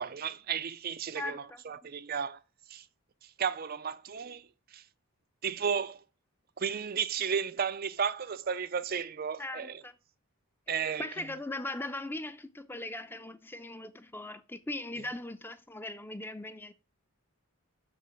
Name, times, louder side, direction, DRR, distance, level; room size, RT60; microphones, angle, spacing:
voice 1, 0.0-2.4 2.7-2.9 3.2-4.8 5.4-6.0 6.6-9.8 10.7-11.3, right 7 dB, 40° right, 0.4 m, -34 dB
voice 2, 1.2-1.6 9.4-9.9 10.7-16.7, left 2 dB, 10° left, 0.5 m, -39 dB
6.7 x 6.7 x 7.7 m
head